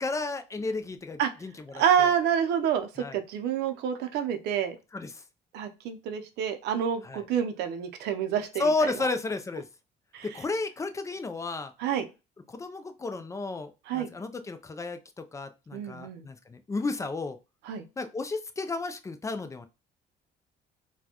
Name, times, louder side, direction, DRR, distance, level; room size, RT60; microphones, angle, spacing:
voice 1, 0.0-2.1 3.0-3.2 4.9-5.2 7.0-7.2 8.6-9.6 10.2-11.7 12.5-17.4 18.0-19.7, left 3 dB, 20° left, 8 dB, 0.4 m, -33 dB
voice 2, 1.7-4.8 5.5-8.9 10.1-10.4 11.8-12.1 13.9-14.1 15.7-16.3 17.7-17.8, right 8 dB, 80° right, 7 dB, 0.6 m, -28 dB
4.2 x 2.2 x 2.9 m, 0.28 s
cardioid pair, 110°, 17 cm